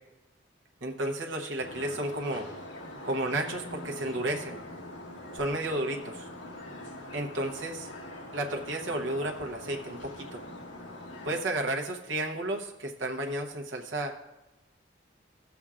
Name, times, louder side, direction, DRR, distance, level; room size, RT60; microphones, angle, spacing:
voice 1, 0.8-2.5 3.0-4.6 5.3-6.3 7.1-7.9 8.3-10.4 11.2-14.1, right 1 dB, 70° right, 2 dB, 0.9 m, -32 dB
sound 1, 1.6-11.4, left 1 dB, 75° left, 1.5 m, -43 dB
16.5 x 6.9 x 2.4 m, 0.99 s
head